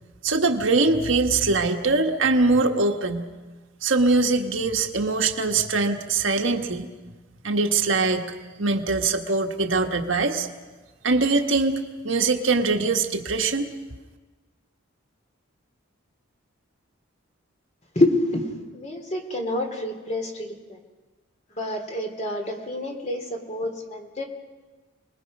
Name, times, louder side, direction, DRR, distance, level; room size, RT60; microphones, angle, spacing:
voice 1, 0.2-3.2 3.8-6.9 7.4-8.3 8.6-10.5 11.0-13.7, right 3 dB, 65° right, 4 dB, 1.5 m, -22 dB
voice 2, 17.9-20.8 21.6-24.2, left 1 dB, 35° left, 3 dB, 3.0 m, -27 dB
30.0 x 20.5 x 5.4 m, 1.3 s
head